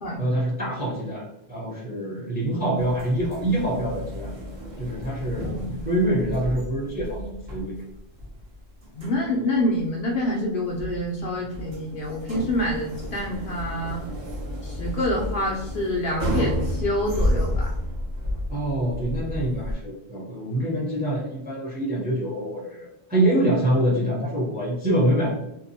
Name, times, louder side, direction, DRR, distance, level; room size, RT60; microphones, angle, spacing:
voice 1, 0.2-4.3 4.8-7.8 18.5-25.3, right 1 dB, 10° right, -4 dB, 0.6 m, -25 dB
sound 1, 2.8-19.7, equal, 55° right, 0.9 m, -31 dB
voice 2, 5.3-5.7 9.0-14.0 14.6-17.7, left 1 dB, 60° left, -3 dB, 0.6 m, -27 dB
2.8 x 2.2 x 2.6 m, 0.88 s
omnidirectional pair, 1.2 m